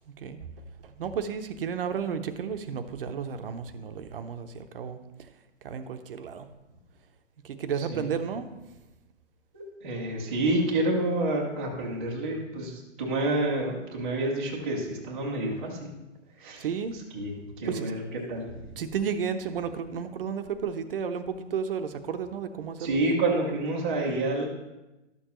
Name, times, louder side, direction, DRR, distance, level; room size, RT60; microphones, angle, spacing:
voice 1, 0.1-0.4 0.8-5.3 5.6-6.5 7.4-8.5 16.6-16.9 17.7-17.9 18.8-23.0, right 7 dB, 50° right, 9 dB, 0.6 m, -33 dB
voice 2, 9.8-15.9 16.4-16.6 17.1-17.3 17.6-18.0 18.3-18.7 22.8-24.5, right 2 dB, 10° right, -7 dB, 0.4 m, -28 dB
12.0 x 6.7 x 3.0 m, 1.0 s
hypercardioid pair, 160°, 37 cm